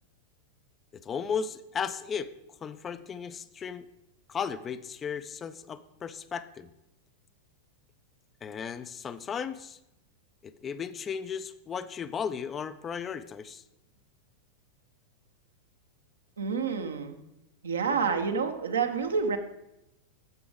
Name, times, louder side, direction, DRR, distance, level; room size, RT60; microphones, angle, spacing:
voice 1, 1.0-2.3 2.6-3.9 4.3-6.7 8.4-9.8 10.4-13.6, left 7 dB, 25° left, 13 dB, 0.4 m, -35 dB
voice 2, 16.4-17.2 17.6-19.4, right 5 dB, 70° right, 7 dB, 0.9 m, -28 dB
8.2 x 7.0 x 5.1 m, 0.90 s
figure-of-eight pair, 90°, 0 cm